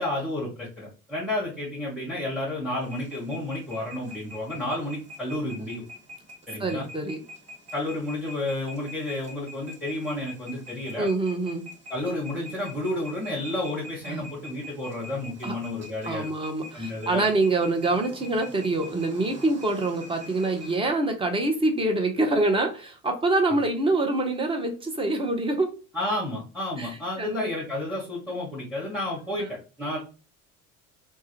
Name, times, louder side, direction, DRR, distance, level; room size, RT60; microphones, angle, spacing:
voice 1, 0.0-5.8 6.5-6.9 7.7-11.1 11.9-16.3 16.7-17.2 25.9-30.0, left 1 dB, ahead, -5 dB, 0.9 m, -31 dB
sound 1, 2.8-20.8, left 1 dB, 35° right, 1.3 m, -45 dB
voice 2, 6.6-7.2 11.0-11.6 14.1-14.2 15.4-15.6 16.0-25.7 26.8-27.5 29.3-29.5, right 2 dB, 15° right, 4 dB, 0.5 m, -25 dB
2.2 x 2.1 x 2.9 m, 0.34 s
hypercardioid pair, 70°, 44 cm